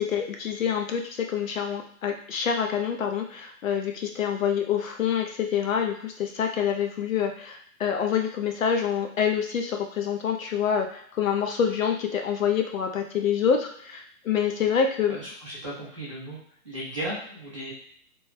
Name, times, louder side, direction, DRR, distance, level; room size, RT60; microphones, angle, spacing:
voice 1, 0.0-15.2, left 7 dB, 60° left, 3 dB, 0.5 m, -26 dB
voice 2, 15.1-16.4 16.6-17.7, right 1 dB, 20° right, -10 dB, 0.5 m, -35 dB
2.9 x 2.2 x 3.1 m, 0.62 s
hypercardioid pair, 175°, 47 cm